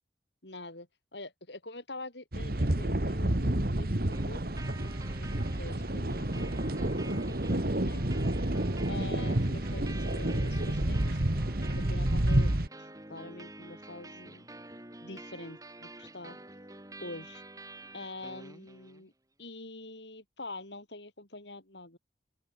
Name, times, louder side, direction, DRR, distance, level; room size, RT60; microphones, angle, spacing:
voice 1, 0.4-0.9 1.1-4.6 4.9-8.0 8.9-11.2 11.8-12.5 12.8-14.5 15.0-16.4 17.0-17.4 17.9-19.1 19.4-22.0, left 2 dB, 70° left, 6.8 m, -45 dB
sound 1, 2.3-12.7, right 1 dB, 55° right, 1.9 m, -29 dB
sound 2, 4.1-19.1, right 2 dB, 20° right, 5.4 m, -48 dB
open air
head